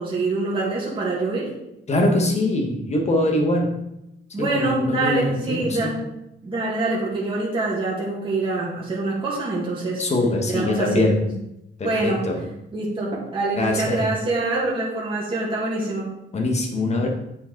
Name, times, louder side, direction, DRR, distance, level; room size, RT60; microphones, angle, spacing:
voice 1, 0.0-1.5 4.3-6.0 6.4-10.0 10.5-11.0 11.8-12.2 12.7-16.1, right 2 dB, 25° right, -6 dB, 1.9 m, -25 dB
voice 2, 1.9-3.8 4.4-5.9 10.0-11.3 11.8-12.5 13.6-14.1 16.3-17.1, left 1 dB, 30° left, 2 dB, 1.4 m, -23 dB
9.0 x 4.7 x 4.6 m, 0.86 s
wide cardioid pair, 170°, 21 cm